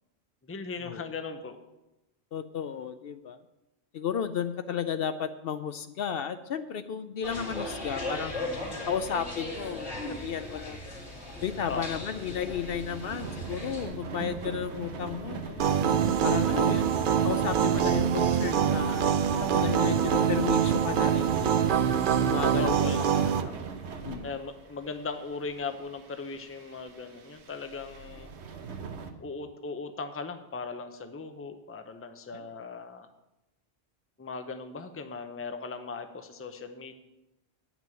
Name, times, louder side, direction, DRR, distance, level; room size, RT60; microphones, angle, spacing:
voice 1, 0.5-1.6 11.7-11.8 22.6-23.0 24.2-28.3 29.2-33.1 34.2-36.9, left 4 dB, 15° left, 8 dB, 0.6 m, -38 dB
voice 2, 2.3-3.4 3.9-8.4 8.9-10.8 11.4-15.7 16.2-17.0 17.2-21.8 22.2-23.7 24.0-24.3 32.3-32.5, left 8 dB, 65° left, 11 dB, 0.7 m, -34 dB
sound 1, 7.2-13.9, left 1 dB, 90° left, 3.0 m, -38 dB
sound 2, 9.9-29.1, right 5 dB, 85° right, 1.2 m, -40 dB
sound 3, 15.6-23.4, right 8 dB, 60° right, 0.7 m, -25 dB
9.4 x 6.1 x 7.5 m, 0.96 s
omnidirectional pair, 1.1 m